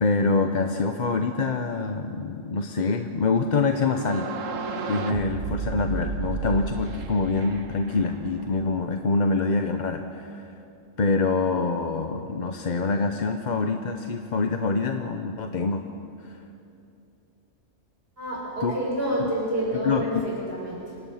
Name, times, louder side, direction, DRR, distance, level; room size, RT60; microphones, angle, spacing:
voice 1, 0.0-4.3 4.9-10.5 11.0-15.8 16.2-16.4 18.6-18.7 19.2-19.3 19.8-20.2, left 3 dB, 40° left, 6 dB, 0.8 m, -25 dB
sound 1, 3.8-8.6, right 5 dB, 85° right, 1.5 m, -33 dB
voice 2, 18.2-21.0, right 1 dB, 50° right, -6 dB, 7.5 m, -29 dB
27.0 x 18.0 x 5.7 m, 2.7 s
omnidirectional pair, 1.3 m